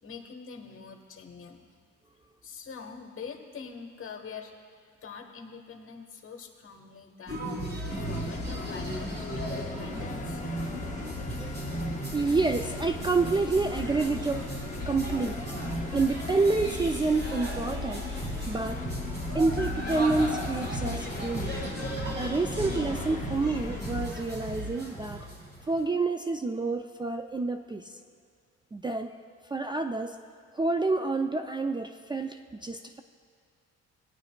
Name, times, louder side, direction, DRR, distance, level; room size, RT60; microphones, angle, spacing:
voice 1, 0.0-1.7 2.4-4.5 5.0-10.4, left 5 dB, 45° left, 3 dB, 1.3 m, -44 dB
sound 1, 7.3-25.8, right 1 dB, 35° right, 2.6 m, -35 dB
sound 2, 7.9-24.1, left 5 dB, 25° left, 0.6 m, -39 dB
voice 2, 11.3-11.6 12.1-14.4 14.9-15.4 15.9-18.8 19.3-21.5 22.1-25.3 25.7-27.9 28.7-29.1 29.5-30.2 30.5-33.0, right 3 dB, 15° right, 6 dB, 0.3 m, -28 dB
17.5 x 9.4 x 2.2 m, 2.1 s
cardioid pair, 90°, 30 cm